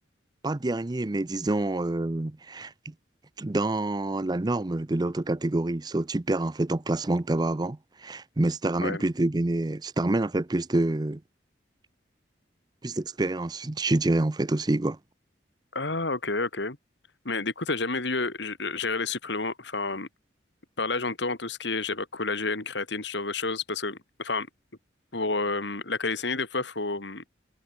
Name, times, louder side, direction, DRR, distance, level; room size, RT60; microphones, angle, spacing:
voice 1, 0.4-2.9 3.4-11.2 12.8-15.0, right 2 dB, 20° right, 0.5 m, -27 dB
voice 2, 15.7-16.8 17.2-20.1 20.8-24.5 25.1-27.2, left 3 dB, 65° left, 2.8 m, -30 dB
head